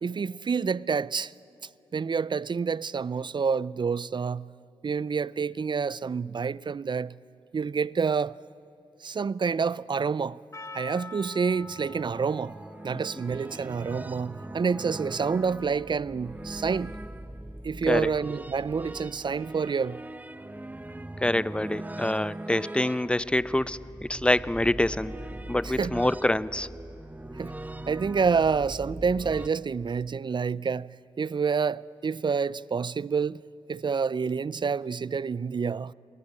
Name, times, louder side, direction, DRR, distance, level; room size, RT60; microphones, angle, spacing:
voice 1, 0.0-1.3 1.9-4.5 4.8-7.1 7.5-8.4 9.0-10.4 10.7-12.6 12.8-16.9 17.6-20.0 25.6-26.0 27.4-27.5 27.9-33.4 33.7-35.9, right 5 dB, 45° right, 0.6 m, -28 dB
Percussion, 10.5-15.1, left 3 dB, 25° left, 1.4 m, -46 dB
sound 1, 11.3-29.5, right 1 dB, 15° right, 1.3 m, -41 dB
voice 2, 21.2-25.1 25.5-26.7, left 1 dB, 10° left, 0.8 m, -26 dB
29.5 x 21.5 x 8.9 m
supercardioid pair, 40°, 11 cm